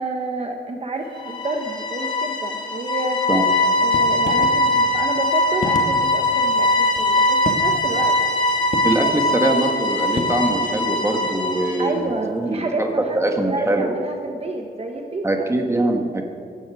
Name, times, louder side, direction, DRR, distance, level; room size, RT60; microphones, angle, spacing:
voice 1, 0.0-3.2 3.8-8.1 11.8-15.5, right 2 dB, 40° right, 3 dB, 1.0 m, -29 dB
sound 1, 1.2-11.9, left 1 dB, 30° left, 2.0 m, -21 dB
sound 2, 3.8-10.2, left 3 dB, 50° left, 1.4 m, -32 dB
voice 2, 8.8-12.9 13.1-13.9 15.2-16.2, right 2 dB, 15° right, 3 dB, 1.6 m, -22 dB
18.5 x 15.5 x 4.9 m, 2.4 s
wide cardioid pair, 175°, 16 cm